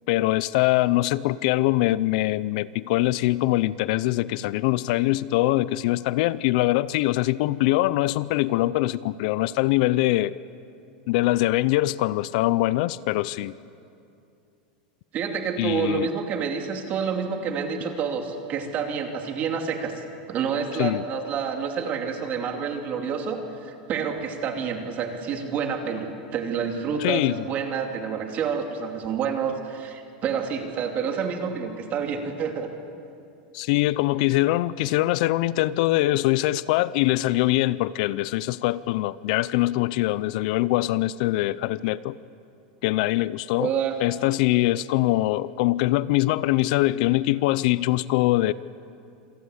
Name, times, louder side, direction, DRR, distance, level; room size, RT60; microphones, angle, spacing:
voice 1, 0.1-10.4 11.1-13.5 15.6-16.1 20.8-21.0 27.0-27.4 33.5-42.2 42.8-43.7 44.0-48.5, left 17 dB, 60° left, 18 dB, 0.5 m, -23 dB
voice 2, 15.1-20.0 20.3-32.7 43.6-44.0, right 6 dB, 35° right, 4 dB, 2.7 m, -28 dB
26.5 x 18.0 x 8.1 m, 2.6 s
supercardioid pair, 150°, 5 cm